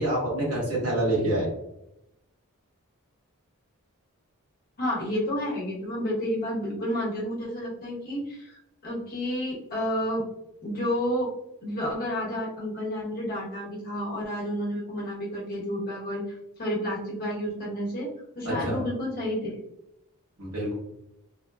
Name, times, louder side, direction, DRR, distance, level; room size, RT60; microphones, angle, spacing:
voice 1, 0.0-1.5 18.4-18.8 20.4-20.7, right 1 dB, 75° right, -7 dB, 1.2 m, -26 dB
voice 2, 4.8-10.3 10.6-11.3 11.6-16.2 16.6-18.1 18.3-19.6, equal, 40° left, -5 dB, 1.1 m, -30 dB
3.2 x 2.1 x 2.3 m, 0.84 s
head